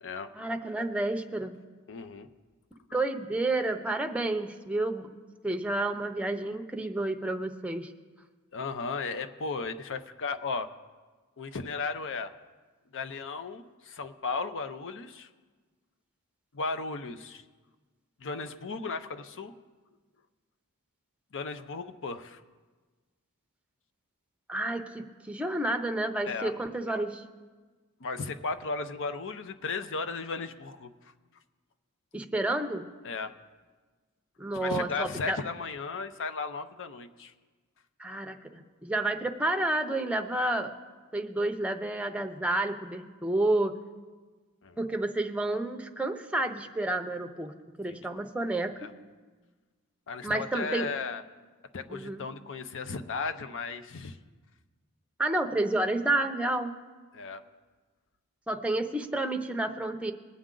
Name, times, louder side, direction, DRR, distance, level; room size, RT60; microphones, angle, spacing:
voice 1, 0.3-1.5 2.9-5.1 5.4-7.9 24.5-27.2 32.1-32.8 34.4-35.4 38.0-40.7 41.1-43.8 44.8-47.5 47.8-48.7 50.2-50.9 51.9-52.2 55.2-56.7 58.5-60.1, right 2 dB, 5° right, 5 dB, 0.6 m, -30 dB
voice 2, 1.9-2.3 8.5-10.7 11.4-12.3 12.9-15.3 16.5-17.4 18.2-19.5 21.3-22.4 26.3-26.5 28.0-31.1 33.0-33.3 34.6-37.3 44.6-44.8 47.9-48.0 48.8-48.9 50.1-51.2 51.7-54.2 57.1-57.4, left 4 dB, 60° left, 10 dB, 0.7 m, -35 dB
21.0 x 8.6 x 3.8 m, 1.4 s
head